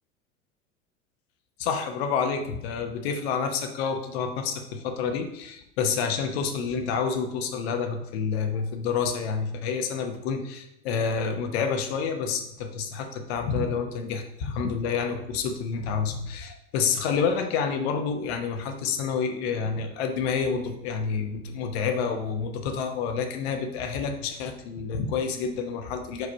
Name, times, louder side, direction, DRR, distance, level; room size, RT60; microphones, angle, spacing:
voice 1, 1.6-26.3, left 6 dB, 55° left, 6 dB, 1.0 m, -28 dB
4.9 x 4.7 x 4.6 m, 0.81 s
figure-of-eight pair, 80°, 38 cm